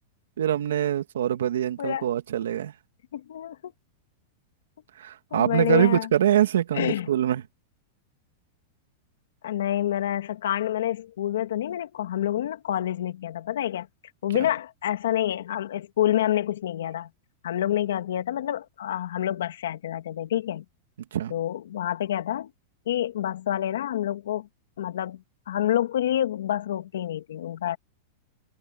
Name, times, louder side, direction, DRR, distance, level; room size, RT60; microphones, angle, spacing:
voice 1, 0.4-2.7 5.0-7.4 21.1-21.3, right 10 dB, 90° right, 2.3 m, -24 dB
voice 2, 3.1-3.7 5.3-6.1 6.7-7.1 9.4-13.9 14.2-17.1 17.4-20.6 21.3-22.5 22.9-24.5 24.8-25.2 25.5-27.8, left 11 dB, 85° left, 2.3 m, -27 dB
supercardioid pair, 140°, 0 cm